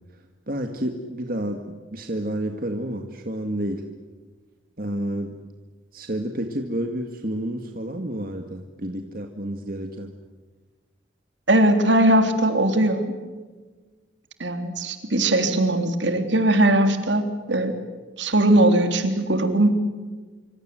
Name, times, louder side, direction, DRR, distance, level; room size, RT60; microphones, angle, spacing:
voice 1, 0.5-3.8 4.8-5.4 5.9-10.1, right 1 dB, 50° right, 4 dB, 2.0 m, -30 dB
voice 2, 11.5-13.1 14.4-17.7 18.2-19.7, right 1 dB, 70° right, 7 dB, 3.3 m, -20 dB
26.5 x 25.5 x 7.8 m, 1.4 s
head